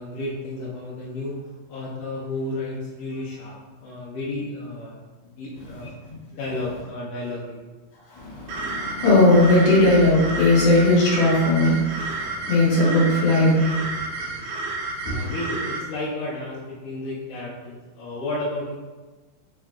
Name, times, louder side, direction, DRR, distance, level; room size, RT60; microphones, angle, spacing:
voice 1, 0.0-5.0 5.4-5.9 6.3-7.6 15.1-18.8, left 2 dB, 80° left, -5 dB, 1.7 m, -32 dB
voice 2, 8.1-13.7 15.0-15.3, left 2 dB, 55° left, -6 dB, 2.2 m, -18 dB
sound 1, 8.5-15.8, right 3 dB, 80° right, 1.7 m, -31 dB
4.8 x 4.7 x 2.2 m, 1.2 s
omnidirectional pair, 4.1 m